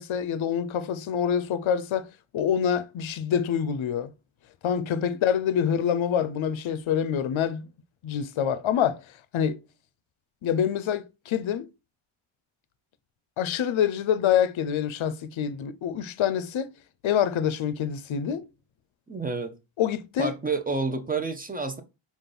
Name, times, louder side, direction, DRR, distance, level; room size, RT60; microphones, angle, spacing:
voice 1, 0.0-2.1 2.3-4.1 4.6-7.6 8.0-9.0 9.3-9.6 10.4-11.7 13.4-16.7 17.0-18.5 19.8-20.3, left 8 dB, 70° left, 0.5 m, -26 dB
voice 2, 19.1-19.5 20.2-21.8, right 4 dB, 20° right, 0.5 m, -29 dB
5.1 x 2.5 x 3.8 m
wide cardioid pair, 165°, 49 cm